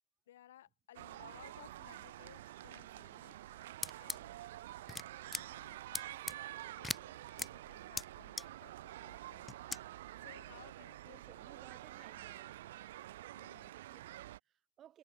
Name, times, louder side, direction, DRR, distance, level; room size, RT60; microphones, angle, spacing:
voice 1, 0.3-3.7 4.0-4.4 5.3-9.6 10.2-11.8 13.3-13.8, left 12 dB, 60° left, 5.8 m, -61 dB
sound 1, 0.9-14.4, right 14 dB, 55° right, 3.6 m, -49 dB
sound 2, 3.8-4.2 4.9-5.0 5.3-5.4 5.9-6.3 6.8-7.0 7.4-7.5 8.0-8.1 8.4-8.5 9.5-9.8, left 3 dB, 10° left, 0.3 m, -38 dB
voice 2, 11.0-12.5 13.9-15.0, right 11 dB, 30° right, 4.6 m, -60 dB
figure-of-eight pair, 90°, 0 cm